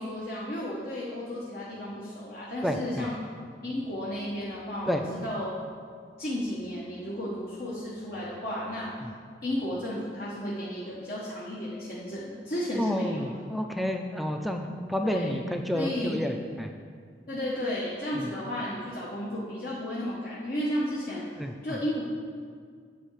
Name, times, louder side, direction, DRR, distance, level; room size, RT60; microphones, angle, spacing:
voice 1, 0.0-3.1 3.6-5.6 6.2-8.9 9.4-13.3 15.1-15.4 15.7-16.1 17.3-21.2 21.6-22.0, left 1 dB, 55° left, -6 dB, 1.1 m, -33 dB
voice 2, 2.6-3.1 4.9-5.0 9.0-9.1 12.7-14.6 14.9-16.7 18.1-18.3 21.4-21.8, equal, ahead, 4 dB, 0.4 m, -30 dB
8.4 x 4.7 x 7.4 m, 2.1 s
head